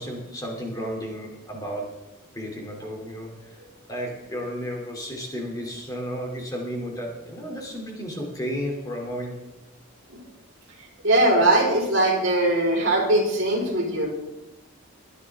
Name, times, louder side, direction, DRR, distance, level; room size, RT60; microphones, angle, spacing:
voice 1, 0.0-2.0 2.3-3.6 3.9-9.4, equal, 15° left, 0 dB, 2.9 m, -33 dB
voice 2, 11.0-14.1, right 1 dB, 60° right, -1 dB, 4.2 m, -20 dB
23.0 x 9.7 x 3.6 m, 0.98 s
head